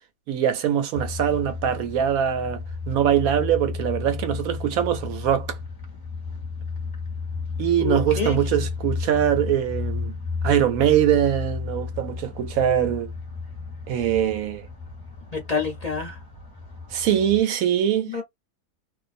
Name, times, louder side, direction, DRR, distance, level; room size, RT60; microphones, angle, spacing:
voice 1, 0.3-5.6 7.6-10.1 10.4-13.1 13.9-14.7 16.9-18.1, right 10 dB, 70° right, 1.0 m, -22 dB
sound 1, 0.9-17.4, left 4 dB, 15° left, 1.0 m, -33 dB
voice 2, 7.8-8.4 15.3-16.2 18.1-18.2, left 4 dB, 35° left, 0.6 m, -27 dB
2.6 x 2.3 x 2.5 m
omnidirectional pair, 1.7 m